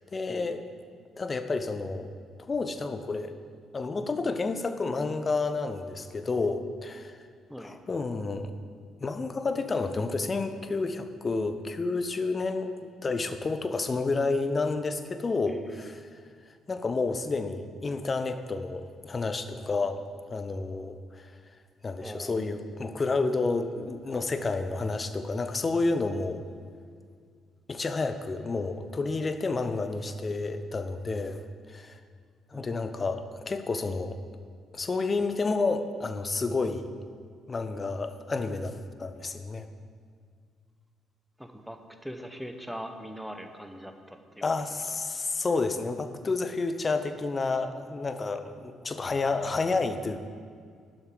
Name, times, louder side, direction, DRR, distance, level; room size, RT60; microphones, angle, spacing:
voice 1, 0.1-0.7 1.2-2.1 2.4-3.3 3.7-7.2 7.6-8.5 9.0-12.7 13.0-16.0 16.7-20.0 20.3-21.3 21.8-26.4 27.7-31.4 31.7-32.0 32.5-34.2 34.7-36.9 37.5-39.7 44.4-50.2, left 3 dB, 30° left, 9 dB, 0.8 m, -30 dB
voice 2, 15.5-16.0 22.0-22.5 32.5-32.7 41.4-44.2, equal, ahead, 6 dB, 1.1 m, -41 dB
11.5 x 11.5 x 3.9 m, 2.1 s
figure-of-eight pair, 45°, 0 cm